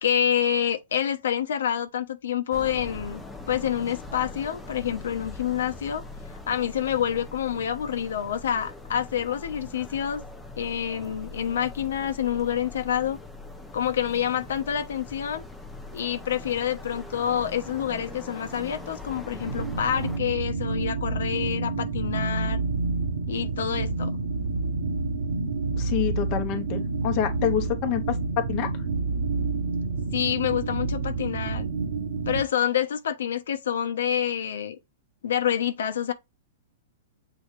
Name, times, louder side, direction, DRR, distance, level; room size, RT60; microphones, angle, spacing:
voice 1, 0.0-3.2 3.5-6.0 6.5-10.2 10.6-13.2 13.7-15.4 15.9-22.6 23.3-24.2 30.1-31.7 32.3-34.8 35.2-36.1, left 9 dB, 85° left, 1.1 m, -27 dB
sound 1, 2.5-20.2, left 2 dB, 5° left, 0.8 m, -41 dB
sound 2, 19.4-32.4, right 3 dB, 55° right, 1.1 m, -29 dB
voice 2, 25.7-28.7, left 11 dB, 30° left, 1.1 m, -27 dB
7.8 x 3.9 x 3.3 m
supercardioid pair, 165°, 0 cm